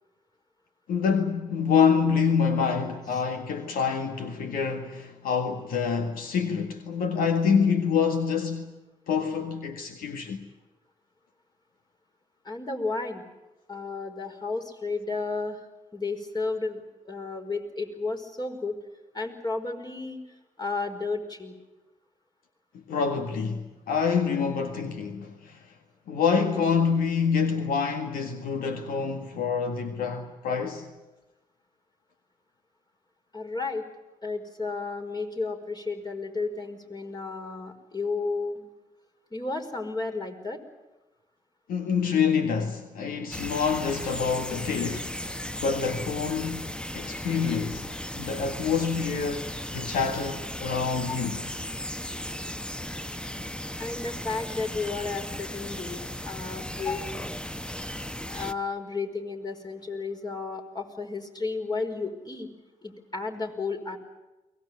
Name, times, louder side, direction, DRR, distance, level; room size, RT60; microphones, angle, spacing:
voice 1, 0.9-8.7 9.1-10.4 22.9-25.6 26.1-30.9 41.7-46.7 46.9-47.9 48.2-51.4, left 6 dB, 75° left, 1.8 m, -26 dB
voice 2, 12.4-13.2 13.7-15.6 15.9-18.8 19.1-20.2 20.6-21.5 33.3-33.8 34.2-38.6 39.3-40.6 51.1-51.2 53.8-57.2 58.3-62.5 62.8-64.0, left 3 dB, 30° left, 5.1 m, -32 dB
sound 1, 43.3-58.5, left 1 dB, 5° left, 1.1 m, -36 dB
23.0 x 19.0 x 9.6 m
hypercardioid pair, 45°, 15 cm